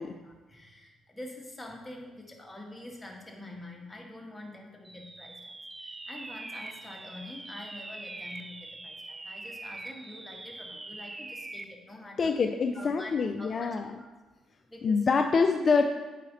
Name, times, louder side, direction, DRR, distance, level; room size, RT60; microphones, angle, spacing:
voice 1, 0.0-12.4 12.7-13.8 14.7-15.3, left 1 dB, 15° left, 0 dB, 1.5 m, -46 dB
sound 1, 4.8-11.8, right 2 dB, 20° right, 0.4 m, -43 dB
voice 2, 12.2-13.9 14.8-15.8, left 5 dB, 45° left, 6 dB, 0.4 m, -25 dB
8.4 x 5.1 x 4.0 m, 1.2 s
cardioid pair, 90°, 0 cm